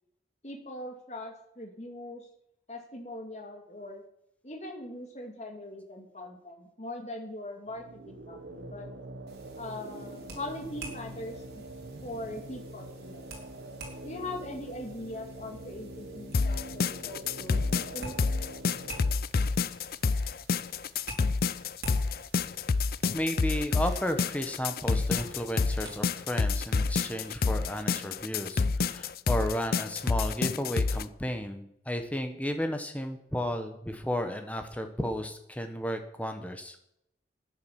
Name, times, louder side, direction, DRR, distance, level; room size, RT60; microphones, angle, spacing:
voice 1, 0.4-2.3 2.7-4.0 4.4-8.9 9.6-11.7 12.0-13.3 14.0-18.2, left 1 dB, 40° left, 3 dB, 2.3 m, -41 dB
sound 1, 7.7-19.1, right 1 dB, 80° right, 1.1 m, -44 dB
sound 2, 9.3-26.7, right 2 dB, 65° right, 3.9 m, -49 dB
sound 3, 16.3-31.0, left 4 dB, 55° left, 0.5 m, -28 dB
voice 2, 23.1-36.8, equal, 10° left, 6 dB, 1.3 m, -33 dB
10.5 x 9.8 x 7.5 m, 0.77 s
head